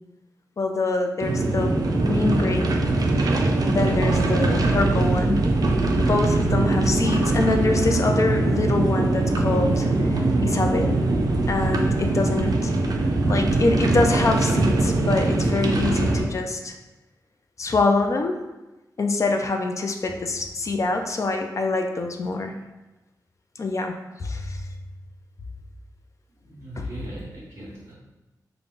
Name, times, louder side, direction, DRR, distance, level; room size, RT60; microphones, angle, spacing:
voice 1, 0.6-2.7 3.7-5.5 5.8-11.0 11.5-12.7 13.3-16.7 17.6-18.4 19.0-22.5 23.6-24.6 26.8-26.9, left 3 dB, 50° left, 4 dB, 0.4 m, -25 dB
sound 1, 1.2-16.2, right 2 dB, 65° right, 0.4 m, -22 dB
voice 2, 26.4-27.9, right 1 dB, 40° right, -6 dB, 0.9 m, -39 dB
3.8 x 2.2 x 3.6 m, 1.0 s
wide cardioid pair, 115°, 7 cm